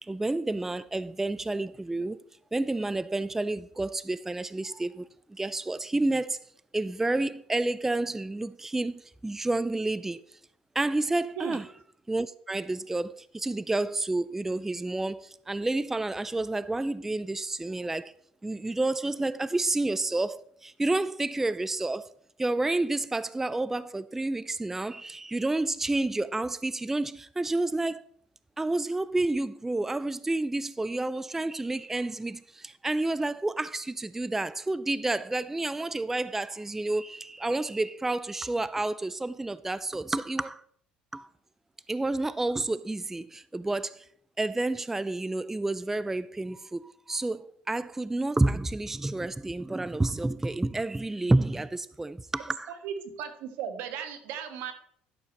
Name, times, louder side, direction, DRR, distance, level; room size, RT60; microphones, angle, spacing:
voice 1, 0.0-2.2 2.5-6.4 6.7-10.4 10.8-11.7 12.1-18.1 18.4-22.1 22.4-28.0 28.6-40.6 41.1-41.3 41.9-44.1 44.4-52.7, right 2 dB, 10° right, 0.3 m, -30 dB
voice 2, 52.8-54.7, right 8 dB, 80° right, 1.4 m, -36 dB
11.5 x 6.8 x 4.0 m
supercardioid pair, 95°, 3 cm